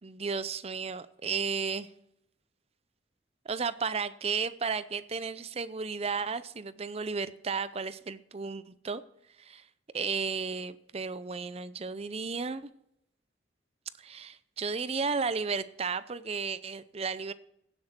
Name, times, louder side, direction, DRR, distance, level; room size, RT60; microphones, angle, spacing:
voice 1, 0.0-1.9 3.4-9.0 9.4-9.6 9.9-12.7 14.0-17.3, right 5 dB, 35° right, 0.6 m, -33 dB
16.5 x 7.5 x 4.5 m
head